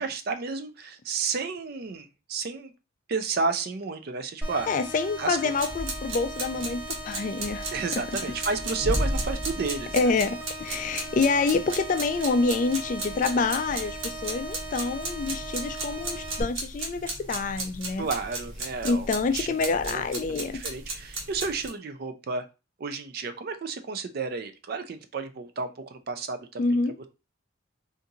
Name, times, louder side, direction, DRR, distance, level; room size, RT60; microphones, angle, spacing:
voice 1, 0.0-2.7 3.1-4.7 5.2-5.6 7.7-10.1 18.0-19.1 19.3-20.0 20.3-22.4 22.8-26.6 27.0-27.1, right 4 dB, 50° right, 0.4 m, -32 dB
sound 1, 4.4-16.4, right 1 dB, 10° right, 0.8 m, -39 dB
voice 2, 4.7-7.7 9.9-18.1 18.8-20.6 26.6-27.0, left 4 dB, 40° left, 0.3 m, -27 dB
sound 2, 5.6-21.7, right 1 dB, 85° right, 1.1 m, -35 dB
3.9 x 2.5 x 2.7 m
head